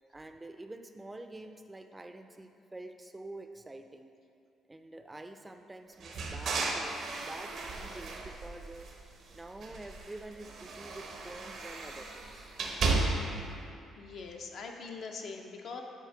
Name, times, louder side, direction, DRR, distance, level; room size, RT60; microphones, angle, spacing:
voice 1, 0.1-4.1 4.7-6.9 7.2-8.9 9.3-12.5, right 2 dB, 20° right, 7 dB, 0.4 m, -47 dB
sound 1, 6.0-9.2 9.6-13.5, right 3 dB, 70° right, 0.7 m, -35 dB
voice 2, 14.0-15.8, left 4 dB, 65° left, 2 dB, 0.6 m, -42 dB
7.5 x 2.6 x 5.0 m, 2.7 s
supercardioid pair, 65°, 0 cm